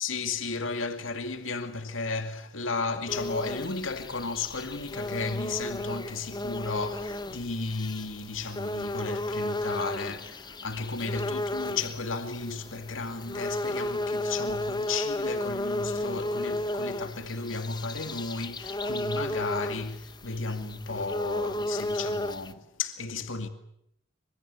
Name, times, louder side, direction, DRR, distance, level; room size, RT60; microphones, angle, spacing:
voice 1, 0.0-23.5, left 4 dB, 85° left, 2.4 m, -34 dB
sound 1, 3.1-22.5, left 1 dB, 20° left, 1.0 m, -34 dB
27.5 x 25.5 x 8.3 m
head